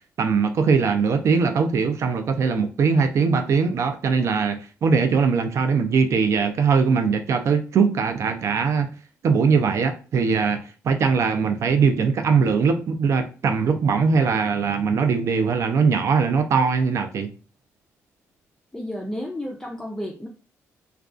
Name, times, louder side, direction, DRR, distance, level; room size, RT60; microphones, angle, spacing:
voice 1, 0.2-8.9 9.2-17.3, right 5 dB, 60° right, 0.4 m, -21 dB
voice 2, 18.7-20.3, left 1 dB, 10° left, 0.4 m, -32 dB
2.3 x 2.2 x 2.4 m
cardioid pair, 85°, 6 cm